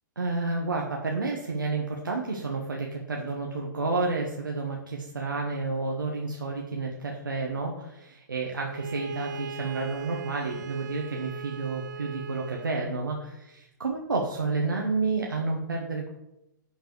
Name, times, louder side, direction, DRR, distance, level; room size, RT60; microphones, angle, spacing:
voice 1, 0.2-16.1, right 3 dB, 90° right, -1 dB, 1.2 m, -30 dB
Bowed string instrument, 8.7-12.9, right 6 dB, 65° right, 0.7 m, -40 dB
10.5 x 4.6 x 4.6 m, 0.89 s
hypercardioid pair, 115°, 11 cm